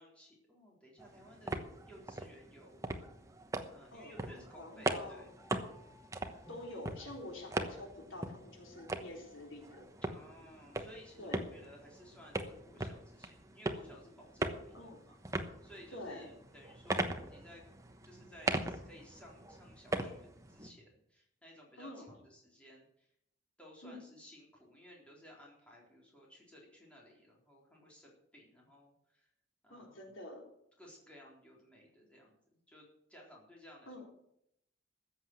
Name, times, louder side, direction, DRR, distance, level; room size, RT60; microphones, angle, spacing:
voice 1, 0.0-1.6 1.9-2.9 3.7-5.3 10.0-15.1 15.6-17.6 18.0-23.1 23.6-29.3 29.6-30.1 30.8-34.1, equal, 5° left, -3 dB, 3.9 m, -57 dB
sound 1, 1.0-20.7, right 2 dB, 15° right, 1.0 m, -41 dB
voice 2, 3.9-5.2 6.5-9.9 11.2-11.5 14.7-15.0 15.9-16.3 21.8-22.1 23.8-24.0 29.7-30.4 33.9-34.1, left 1 dB, 75° left, 1 dB, 3.6 m, -47 dB
sound 2, 4.7-9.8, left 2 dB, 25° left, 3.5 m, -66 dB
14.0 x 8.0 x 8.0 m, 0.76 s
head